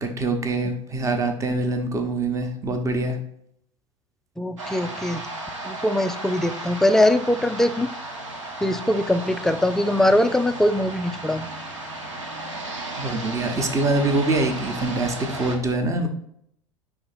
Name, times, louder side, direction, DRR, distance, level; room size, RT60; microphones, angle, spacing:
voice 1, 0.0-3.2 13.0-16.1, right 2 dB, 20° right, 5 dB, 0.9 m, -24 dB
voice 2, 4.4-5.2 5.6-7.9 8.6-11.5, left 1 dB, 5° left, 10 dB, 0.3 m, -21 dB
sound 1, 4.6-15.6, right 2 dB, 70° right, 1.4 m, -34 dB
5.6 x 3.5 x 5.6 m, 0.70 s
figure-of-eight pair, 80°, 16 cm